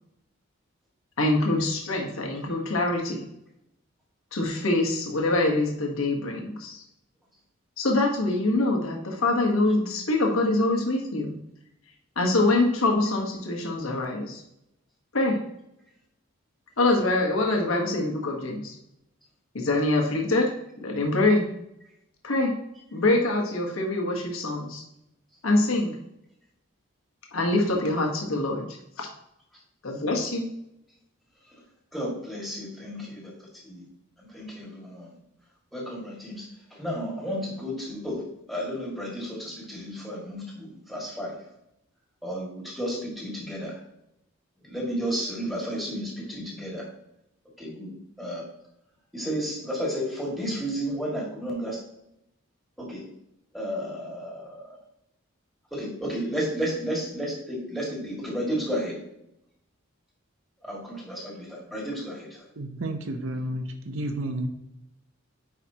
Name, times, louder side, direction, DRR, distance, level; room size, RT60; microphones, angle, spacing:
voice 1, 1.2-3.2 4.3-6.8 7.8-11.3 12.2-14.4 15.1-15.4 16.8-18.7 19.5-20.5 20.8-21.5 22.2-22.5 22.9-24.8 25.4-26.0 27.3-29.1 29.8-30.5, left 2 dB, 80° left, 1 dB, 1.2 m, -24 dB
voice 2, 31.9-33.3 33.7-33.8 34.2-35.1 35.7-38.2 38.5-41.4 42.2-43.8 44.6-46.9 47.6-48.4 49.1-51.8 52.8-53.0 53.5-54.8 55.7-59.0 60.6-62.4, equal, ahead, -3 dB, 1.9 m, -32 dB
voice 3, 62.6-64.5, right 1 dB, 70° right, 6 dB, 0.8 m, -31 dB
9.0 x 4.9 x 2.8 m, 0.82 s
head